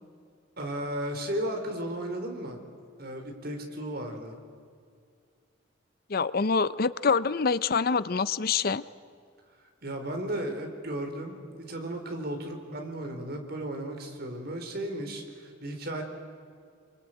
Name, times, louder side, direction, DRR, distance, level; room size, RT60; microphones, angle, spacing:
voice 1, 0.6-2.6 3.0-4.3 9.8-16.0, right 1 dB, 50° right, 4 dB, 3.9 m, -35 dB
voice 2, 6.1-8.8, left 5 dB, 50° left, 16 dB, 0.6 m, -26 dB
27.0 x 23.5 x 9.1 m, 2.2 s
head